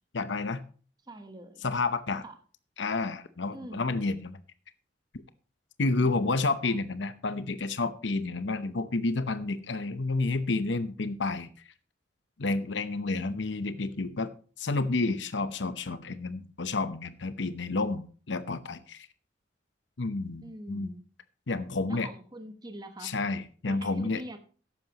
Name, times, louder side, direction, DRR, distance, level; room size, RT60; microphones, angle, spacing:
voice 1, 0.1-0.6 1.6-2.2 2.8-4.3 5.8-11.5 12.4-14.3 14.6-19.1 20.0-20.9 21.5-22.1 23.0-24.2, left 3 dB, 75° left, 12 dB, 0.8 m, -30 dB
voice 2, 1.0-1.7 2.2-2.4 3.5-4.0 6.0-6.8 20.4-21.0 21.9-23.1 23.7-24.4, right 1 dB, 20° right, 7 dB, 1.1 m, -44 dB
13.5 x 10.5 x 2.9 m, 0.40 s
head